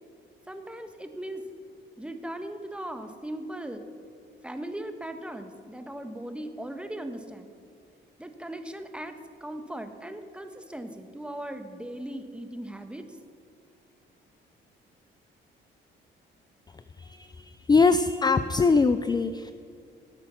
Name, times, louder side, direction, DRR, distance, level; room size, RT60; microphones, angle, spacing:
voice 1, 0.5-1.4 2.0-3.9 4.4-7.5 8.2-13.0, right 1 dB, 5° right, 7 dB, 1.3 m, -38 dB
voice 2, 17.0-19.5, left 4 dB, 20° left, 11 dB, 0.5 m, -23 dB
17.5 x 8.5 x 5.8 m, 2.4 s
cardioid pair, 90°, 20 cm